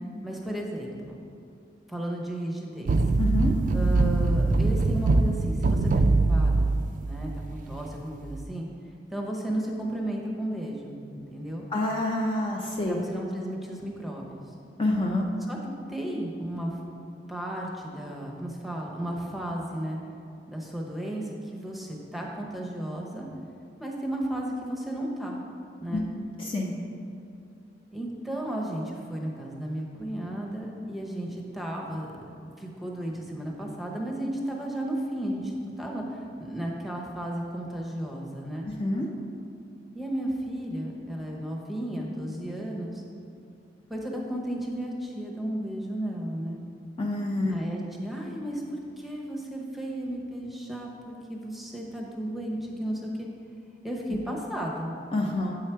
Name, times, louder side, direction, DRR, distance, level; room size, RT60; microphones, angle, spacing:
voice 1, 0.2-1.1 1.9-2.9 3.7-6.7 7.0-8.7 9.1-11.7 12.8-14.4 15.5-15.6 15.9-16.8 17.3-20.0 20.5-23.3 23.8-25.4 25.8-26.1 27.9-32.1 32.6-38.7 39.9-43.0 43.9-46.6 47.5-53.3 53.8-55.0, right 1 dB, ahead, -1 dB, 0.8 m, -34 dB
sound 1, 2.9-7.8 8.2-8.4, right 3 dB, 45° right, 0.3 m, -23 dB
voice 2, 3.2-3.5 11.7-13.0 14.8-15.3 25.9-26.7 38.8-39.1 47.0-47.6 55.1-55.6, left 1 dB, 30° left, -1 dB, 0.5 m, -27 dB
8.2 x 4.7 x 4.5 m, 2.5 s
head